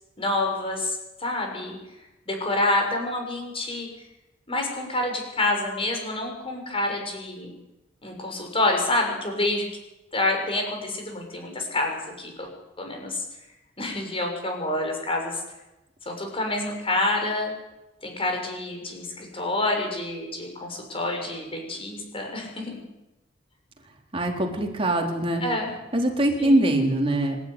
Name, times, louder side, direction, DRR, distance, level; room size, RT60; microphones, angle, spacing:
voice 1, 0.2-1.8 2.3-3.9 4.5-7.5 8.0-9.7 10.1-12.5 12.8-13.2 13.8-15.4 16.1-17.5 18.0-22.8 25.4-25.7 26.4-26.7, left 2 dB, 30° left, 2 dB, 6.2 m, -27 dB
voice 2, 24.1-25.4 25.9-27.4, right 1 dB, 30° right, 1 dB, 3.9 m, -23 dB
26.0 x 12.5 x 10.0 m, 0.99 s
head